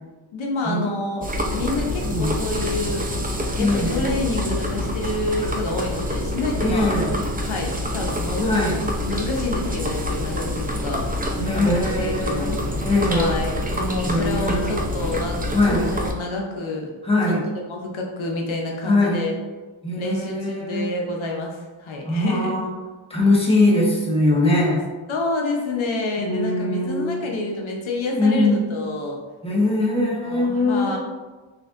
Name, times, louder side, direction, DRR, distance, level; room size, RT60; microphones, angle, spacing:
voice 1, 0.3-3.1 3.6-6.9 7.4-8.5 9.1-11.2 11.5-12.6 13.1-16.9 17.3-19.4 20.0-22.6 25.1-29.2 30.1-31.0, left 2 dB, 80° left, 0 dB, 0.8 m, -28 dB
sound 1, 1.2-16.1, left 1 dB, 20° right, 0.5 m, -26 dB
voice 2, 2.0-2.4 3.6-4.0 6.6-7.1 8.4-8.8 11.4-12.5 12.8-13.4 14.1-14.8 15.5-15.9 17.0-17.5 18.8-19.3 19.8-20.9 22.1-22.7 23.1-24.8 26.2-27.3 28.2-28.6 29.4-31.0, left 2 dB, 10° left, -4 dB, 1.1 m, -21 dB
6.0 x 2.6 x 2.5 m, 1.3 s
wide cardioid pair, 80°, 47 cm